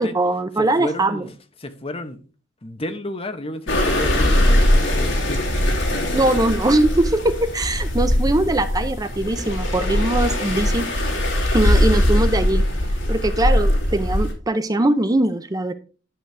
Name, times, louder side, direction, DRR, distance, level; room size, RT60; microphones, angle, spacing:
voice 1, 0.0-1.2 6.1-10.9 11.5-12.6 13.1-15.7, right 1 dB, 20° right, 0.5 m, -21 dB
voice 2, 0.6-1.3 1.6-2.2 2.6-5.5, left 1 dB, 30° left, 0.9 m, -31 dB
sound 1, 3.7-14.3, left 1 dB, 75° left, 2.8 m, -20 dB
11.0 x 6.4 x 3.3 m
head